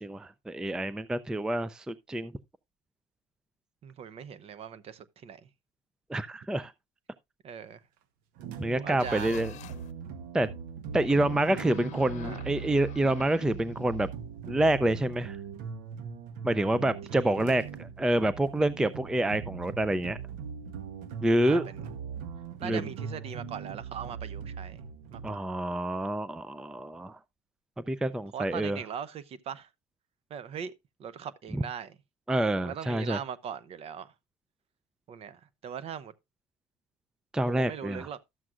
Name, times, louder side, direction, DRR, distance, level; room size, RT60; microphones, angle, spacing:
voice 1, 0.0-2.3 6.1-6.7 8.6-9.5 10.3-10.5 10.9-14.1 14.5-15.4 16.4-20.2 21.2-21.6 22.6-22.9 25.2-27.2 27.8-28.8 31.5-31.6 32.3-33.2 37.3-38.1, right 1 dB, 5° right, 0.4 m, -27 dB
voice 2, 3.8-5.5 7.4-7.8 8.8-9.3 11.0-11.1 12.2-12.4 17.1-17.4 21.4-21.8 22.6-25.4 28.3-29.7 30.3-30.7 31.0-31.9 32.6-34.1 35.1-36.1 37.5-38.2, right 8 dB, 40° right, 0.7 m, -40 dB
sound 1, 8.4-25.3, right 6 dB, 65° right, 1.0 m, -40 dB
sound 2, 9.0-9.9 11.0-14.1, left 12 dB, 50° left, 0.9 m, -46 dB
12.5 x 7.4 x 2.4 m
supercardioid pair, 105°, 16 cm